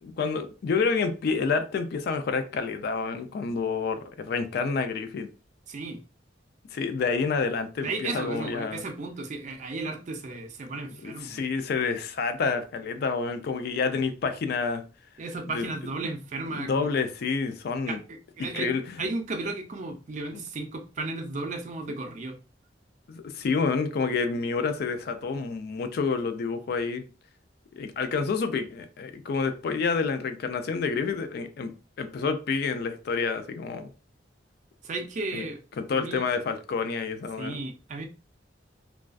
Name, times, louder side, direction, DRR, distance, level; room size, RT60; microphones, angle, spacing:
voice 1, 0.0-5.3 6.7-8.8 11.0-14.8 15.5-15.7 16.5-18.0 18.4-19.0 20.3-20.5 23.1-27.0 27.8-31.7 32.0-33.9 35.3-35.5 35.8-37.6, left 5 dB, 60° left, 0.3 m, -28 dB
voice 2, 5.7-6.0 7.8-11.4 15.2-16.9 17.9-18.7 19.0-22.4 34.8-35.6 36.0-36.3 37.4-38.1, right 3 dB, 40° right, 0.4 m, -34 dB
2.4 x 2.2 x 2.3 m
head